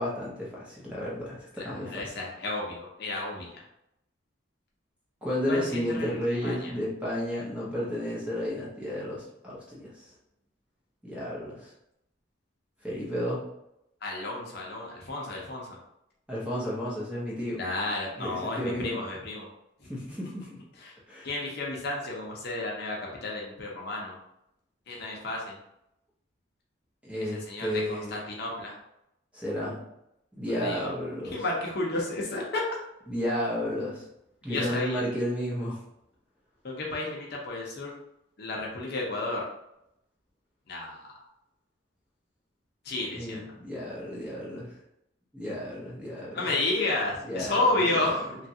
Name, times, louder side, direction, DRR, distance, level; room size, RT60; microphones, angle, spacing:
voice 1, 0.0-2.1 5.2-10.1 11.0-11.7 12.8-13.4 16.3-17.6 18.2-19.0 19.9-20.6 21.1-21.3 27.0-28.2 29.3-29.8 30.3-31.4 33.1-34.0 34.4-35.8 43.1-44.7 45.3-46.4 47.2-48.2, equal, 5° right, -6 dB, 0.7 m, -32 dB
voice 2, 1.6-3.6 5.5-6.7 14.0-15.8 17.6-19.5 19.8-19.9 20.8-20.9 21.2-24.1 24.9-25.6 27.2-28.8 30.6-30.9 31.2-32.6 34.5-35.0 36.6-37.9 38.4-39.4 40.7-41.0 42.8-43.4 46.3-48.4, left 2 dB, 55° left, -2 dB, 0.6 m, -32 dB
3.0 x 2.4 x 2.7 m, 0.82 s
head